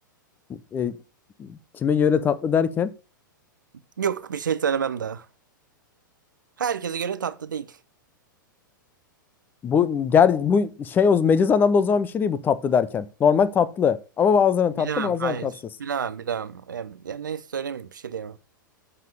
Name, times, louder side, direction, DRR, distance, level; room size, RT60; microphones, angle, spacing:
voice 1, 0.5-1.0 1.4-2.9 9.6-15.5, left 6 dB, 20° left, 0.7 m, -21 dB
voice 2, 4.0-5.3 6.6-7.8 14.8-18.4, right 7 dB, 65° right, 0.8 m, -29 dB
7.5 x 5.5 x 6.6 m
figure-of-eight pair, 100°, 11 cm